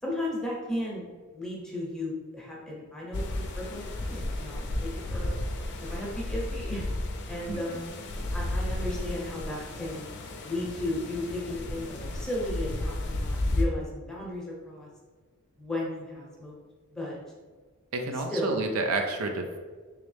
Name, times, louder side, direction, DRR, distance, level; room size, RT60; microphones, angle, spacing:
voice 1, 0.0-1.1 1.3-5.4 5.9-6.8 7.3-7.9 8.3-10.1 10.4-14.9 15.6-16.5 16.9-17.2 18.3-18.6, left 1 dB, 5° left, -4 dB, 0.8 m, -35 dB
sound 1, 3.1-13.6, left 1 dB, 55° left, 0.4 m, -33 dB
voice 2, 7.5-7.8 17.9-19.6, right 2 dB, 70° right, 4 dB, 0.4 m, -30 dB
3.5 x 3.1 x 3.3 m, 1.4 s
head